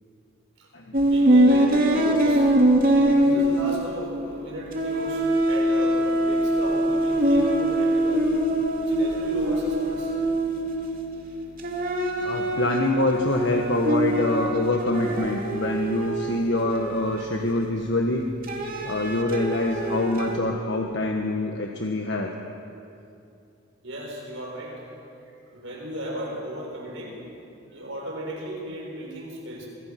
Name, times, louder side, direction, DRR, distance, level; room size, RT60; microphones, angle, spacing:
sound 1, 0.9-4.4 4.7-11.2 11.6-17.8 18.4-20.4, right 1 dB, 45° right, 2.7 m, -23 dB
voice 1, 1.0-2.5 2.9-8.3 8.8-10.1 23.8-24.8 25.2-27.4 27.7-29.7, equal, 70° right, -2 dB, 6.6 m, -35 dB
voice 2, 12.2-18.2 18.8-22.3, left 1 dB, 55° left, 2 dB, 1.5 m, -25 dB
26.0 x 22.0 x 6.0 m, 2.6 s
head